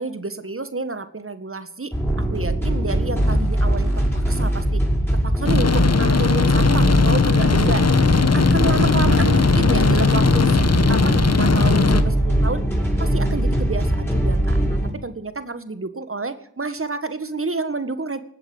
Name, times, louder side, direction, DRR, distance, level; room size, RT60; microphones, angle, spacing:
voice 1, 0.0-4.8 5.3-7.9 8.3-10.6 10.9-12.7 13.0-18.2, right 3 dB, 35° right, 12 dB, 1.7 m, -29 dB
sound 1, 1.9-14.9, right 1 dB, 5° left, 6.3 m, -22 dB
sound 2, 5.5-12.0, left 4 dB, 45° left, 1.4 m, -18 dB
19.5 x 7.9 x 8.0 m, 0.66 s
cardioid pair, 40°, 37 cm